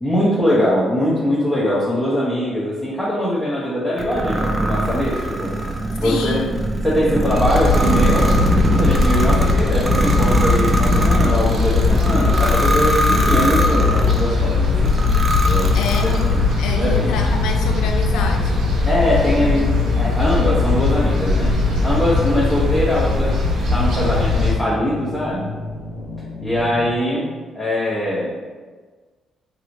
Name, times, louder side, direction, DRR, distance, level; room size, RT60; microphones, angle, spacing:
voice 1, 0.0-5.5 6.0-6.4 6.8-8.3 8.8-15.1 15.4-15.8 16.3-17.1 18.8-19.7 20.0-21.5 21.8-23.3 23.7-25.5 26.4-27.3 27.5-28.3, equal, 10° left, -8 dB, 0.7 m, -21 dB
sound 1, 4.0-14.3 14.9-16.5, right 1 dB, 25° right, 0.4 m, -21 dB
voice 2, 6.0-6.7 11.8-12.5 15.7-18.8, left 5 dB, 90° left, 4 dB, 0.3 m, -28 dB
sound 2, 7.3-24.5, left 3 dB, 75° right, 0.7 m, -19 dB
sound 3, 13.3-26.9, left 3 dB, 45° left, 0.6 m, -31 dB
2.9 x 2.7 x 2.5 m, 1.4 s
cardioid pair, 90°, 0 cm